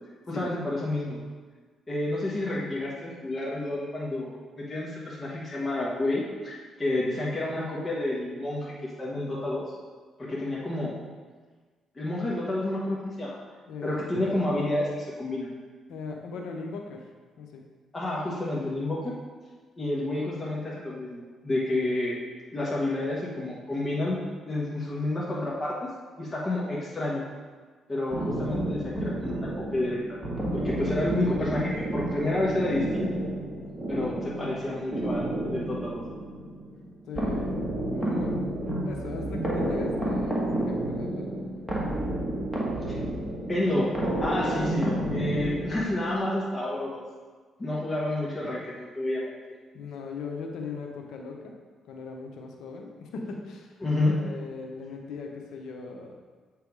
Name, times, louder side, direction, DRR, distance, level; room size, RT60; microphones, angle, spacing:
voice 1, 0.3-1.2 1.9-8.7 9.0-9.7 10.2-11.0 12.0-13.4 13.8-15.5 17.9-19.1 19.8-22.2 22.5-24.2 24.5-25.9 26.2-27.3 27.9-30.0 30.5-33.1 33.9-36.0 42.9-43.0 43.5-43.9 44.2-47.0 47.6-49.3 53.8-54.2, left 1 dB, 25° left, -5 dB, 1.3 m, -29 dB
voice 2, 13.7-14.4 15.9-17.0 17.4-17.6 37.1-37.6 37.9-38.4 38.8-41.3 48.4-48.5 49.7-51.6 51.9-53.7 54.1-56.2, left 4 dB, 80° left, 2 dB, 0.8 m, -39 dB
sound 1, 28.1-46.2, right 1 dB, ahead, 1.5 m, -31 dB
8.2 x 3.4 x 4.7 m, 1.4 s
cardioid pair, 90°, 0 cm